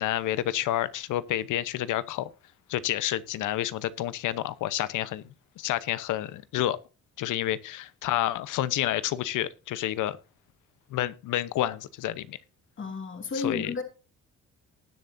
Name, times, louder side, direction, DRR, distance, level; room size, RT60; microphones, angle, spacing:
voice 1, 0.0-2.3 2.7-5.2 5.6-6.8 7.2-10.2 10.9-12.4 13.3-13.7, left 13 dB, 85° left, 0.9 m, -29 dB
voice 2, 12.8-13.8, left 5 dB, 40° left, 2.7 m, -32 dB
19.0 x 7.3 x 2.7 m
cardioid pair, 90°, 30 cm